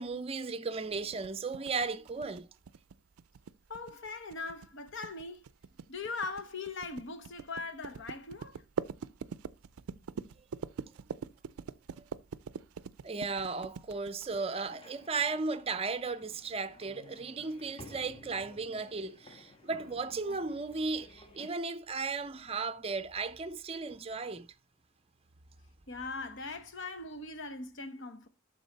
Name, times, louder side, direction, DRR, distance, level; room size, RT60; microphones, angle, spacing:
voice 1, 0.0-2.5 12.0-12.1 13.0-24.5, right 4 dB, 25° right, 0.5 m, -35 dB
sound 1, 0.9-14.7, right 6 dB, 90° right, 0.4 m, -43 dB
voice 2, 3.7-5.5 5.9-8.6 25.9-28.3, left 3 dB, 60° left, 1.0 m, -40 dB
sound 2, 14.5-21.5, left 2 dB, 25° left, 1.5 m, -54 dB
12.0 x 4.1 x 4.0 m
head